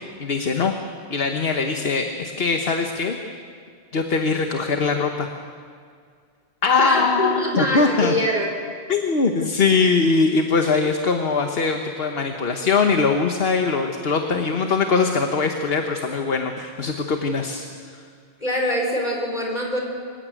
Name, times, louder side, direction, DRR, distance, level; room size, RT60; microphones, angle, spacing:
voice 1, 0.2-0.7 1.1-3.2 3.9-5.3 6.6-8.1 8.9-17.7 17.9-18.0, left 4 dB, 60° left, 5 dB, 1.4 m, -21 dB
voice 2, 6.8-8.5 18.4-19.8, equal, 40° left, 0 dB, 5.3 m, -24 dB
26.0 x 16.0 x 9.2 m, 2.2 s
omnidirectional pair, 1.1 m